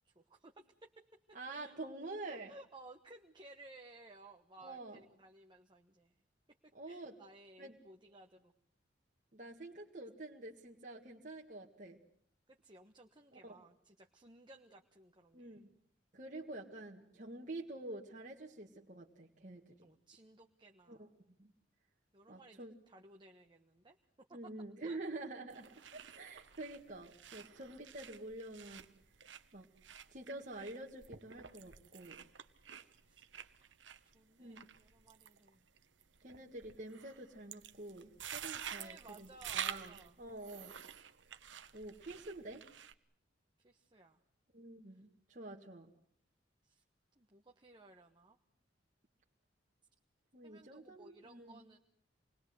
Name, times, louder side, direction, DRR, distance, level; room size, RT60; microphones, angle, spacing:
voice 1, 0.0-0.9 1.3-1.8 2.3-6.1 6.6-8.5 12.5-15.6 19.8-21.1 22.1-24.0 24.3-24.5 24.8-25.0 33.0-33.2 33.6-33.8 34.0-35.6 38.6-40.2 43.6-44.2 44.9-45.0 46.6-46.8 47.1-48.4 50.4-51.8, right 2 dB, 25° right, 3 dB, 1.3 m, -58 dB
voice 2, 1.3-2.5 4.6-5.0 6.7-7.1 7.6-7.8 9.3-12.0 13.3-13.6 15.3-15.7 16.1-19.7 20.9-21.1 21.4-21.5 22.3-22.7 24.3-28.9 29.5-29.7 30.1-32.2 34.4-34.6 36.2-39.3 39.5-40.7 41.7-42.6 44.5-45.9 50.3-51.6, right 2 dB, 45° right, -1 dB, 1.9 m, -48 dB
sound 1, 25.5-42.9, right 8 dB, 75° right, 1.3 m, -49 dB
27.5 x 21.0 x 7.9 m, 0.65 s
head